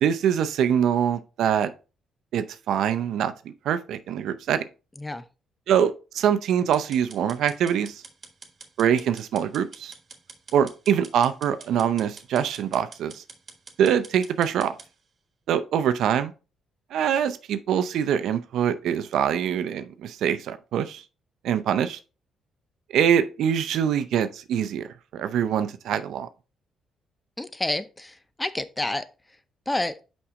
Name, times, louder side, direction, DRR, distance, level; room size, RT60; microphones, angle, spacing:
voice 1, 0.0-1.7 2.3-4.6 5.7-8.0 8.8-9.9 10.5-13.2 13.8-14.7 15.5-16.3 16.9-21.0 21.4-22.0 22.9-26.3, right 9 dB, 75° right, 0.6 m, -24 dB
sound 1, 6.7-14.9, right 5 dB, 45° right, 1.4 m, -46 dB
voice 2, 27.4-29.1 29.7-30.0, left 2 dB, 15° left, 0.6 m, -29 dB
5.8 x 5.4 x 3.6 m
cardioid pair, 90°, 0 cm